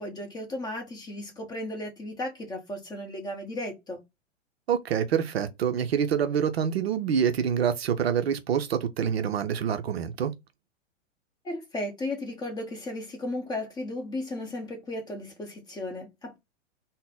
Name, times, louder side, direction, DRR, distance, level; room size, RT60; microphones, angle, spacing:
voice 1, 0.0-4.0 11.4-16.4, left 1 dB, 10° left, 0.8 m, -35 dB
voice 2, 4.7-10.3, right 8 dB, 55° right, 0.5 m, -26 dB
3.7 x 2.0 x 3.5 m
figure-of-eight pair, 105°, 37 cm